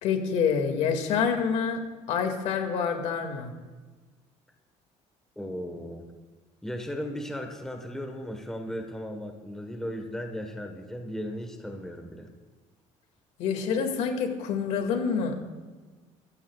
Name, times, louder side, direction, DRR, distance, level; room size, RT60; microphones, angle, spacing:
voice 1, 0.0-1.8 2.1-3.5 13.4-15.4, left 6 dB, 70° left, 4 dB, 2.2 m, -27 dB
voice 2, 5.4-6.1 6.6-12.3, equal, 5° left, 3 dB, 1.4 m, -36 dB
23.5 x 15.5 x 2.4 m, 1.4 s
cardioid pair, 165°, 12 cm